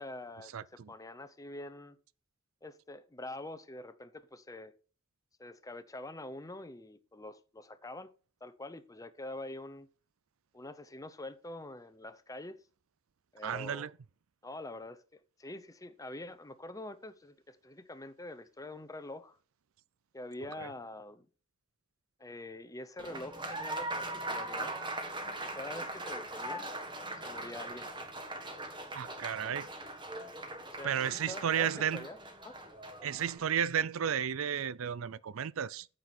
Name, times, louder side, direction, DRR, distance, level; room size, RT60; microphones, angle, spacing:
voice 1, 0.0-2.0 2.6-4.7 5.4-8.1 8.4-9.9 10.5-12.6 13.3-13.9 14.4-19.4 20.1-21.3 22.2-24.7 25.4-26.7 27.2-27.9 30.7-32.2 32.4-32.6, left 2 dB, 15° left, 0.8 m, -45 dB
voice 2, 0.5-0.9 13.4-13.9 20.6-20.7 28.9-29.7 30.8-32.1 33.0-35.9, right 8 dB, 70° right, 0.4 m, -33 dB
Applause, 23.0-33.4, right 2 dB, 25° right, 1.8 m, -40 dB
9.4 x 7.9 x 4.3 m
head